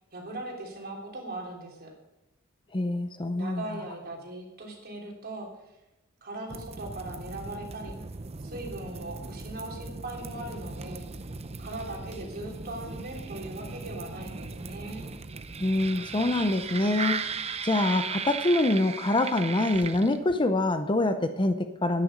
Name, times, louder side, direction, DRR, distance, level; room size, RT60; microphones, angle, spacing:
voice 1, 0.1-1.9 3.4-5.5 6.2-8.0 8.4-11.1 11.6-15.1, right 2 dB, 50° right, 0 dB, 3.4 m, -39 dB
voice 2, 2.7-3.8 15.6-17.2 17.6-22.0, left 2 dB, 25° left, 9 dB, 0.7 m, -25 dB
sound 1, 6.5-20.4, right 5 dB, 30° right, 0.7 m, -37 dB
11.0 x 9.9 x 6.6 m, 0.96 s
head